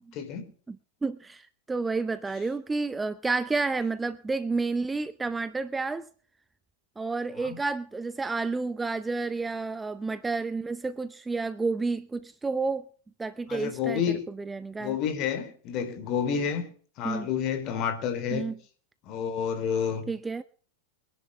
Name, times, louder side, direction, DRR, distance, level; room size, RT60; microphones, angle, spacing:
voice 1, 0.1-0.5 7.4-7.6 13.5-14.2 14.8-16.6 17.0-18.5 19.0-20.1, left 7 dB, 40° left, 3.3 m, -29 dB
voice 2, 1.0-6.1 7.0-12.8 13.2-15.0 17.0-17.3 18.3-18.6 20.1-20.4, right 3 dB, 10° right, 0.7 m, -30 dB
24.5 x 10.5 x 3.4 m
figure-of-eight pair, 90°, 0 cm